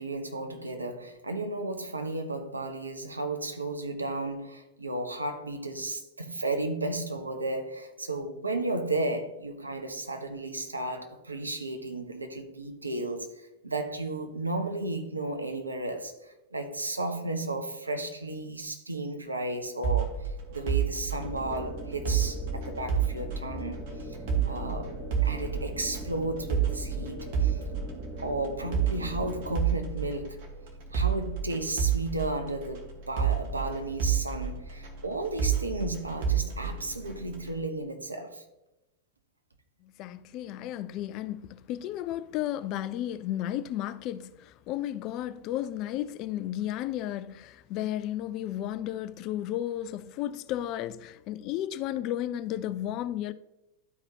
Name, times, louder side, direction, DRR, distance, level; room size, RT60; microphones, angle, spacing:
voice 1, 0.0-24.2 24.4-27.6 28.2-30.4 30.9-38.4, right 2 dB, 80° right, 0.9 m, -34 dB
sound 1, 19.8-37.6, right 8 dB, 50° right, 1.4 m, -31 dB
sound 2, 21.2-29.6, right 1 dB, 15° right, 1.1 m, -40 dB
voice 2, 39.8-53.3, left 12 dB, 40° left, 0.3 m, -33 dB
12.0 x 4.8 x 2.8 m
figure-of-eight pair, 90°, 0 cm